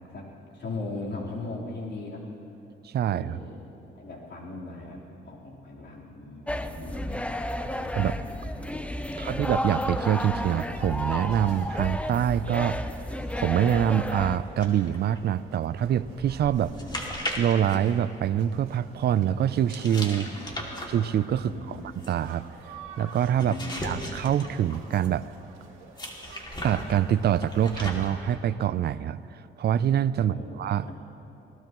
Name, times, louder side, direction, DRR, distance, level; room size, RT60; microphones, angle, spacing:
voice 1, 0.5-2.2 3.0-3.6 4.0-7.0 7.7-8.7 9.0-9.4 16.6-17.0 20.1-20.7 21.4-21.8 23.4-23.9 30.2-30.6 30.8-31.0, left 2 dB, 60° left, -4 dB, 3.9 m, -39 dB
voice 2, 2.8-3.4 7.9-8.2 9.2-12.8 13.4-16.7 17.4-20.3 20.9-21.8 22.1-22.5 23.0-25.3 26.6-29.2 29.6-30.9, right 10 dB, 55° right, 16 dB, 0.5 m, -25 dB
sound 1, 6.5-14.4, left 1 dB, 5° left, 0.7 m, -32 dB
sound 2, 10.3-28.1, right 4 dB, 85° right, 2.0 m, -50 dB
sound 3, 14.6-18.7 19.7-25.2 26.0-28.3, left 1 dB, 20° left, 2.4 m, -38 dB
24.5 x 18.5 x 3.1 m, 3.0 s
cardioid pair, 90°, 20 cm